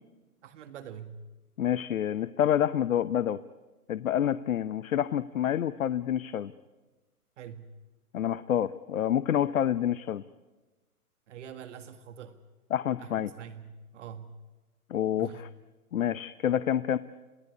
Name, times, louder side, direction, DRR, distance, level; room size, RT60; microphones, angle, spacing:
voice 1, 0.4-1.2 7.4-7.7 11.3-12.4 13.0-14.4 15.2-15.4, right 8 dB, 50° right, 10 dB, 1.9 m, -44 dB
voice 2, 1.6-3.4 3.9-6.5 8.1-10.2 12.7-13.3 14.9-15.5 15.9-17.0, left 10 dB, 60° left, 16 dB, 0.9 m, -28 dB
28.5 x 17.5 x 9.7 m, 1.2 s
figure-of-eight pair, 125°, 45 cm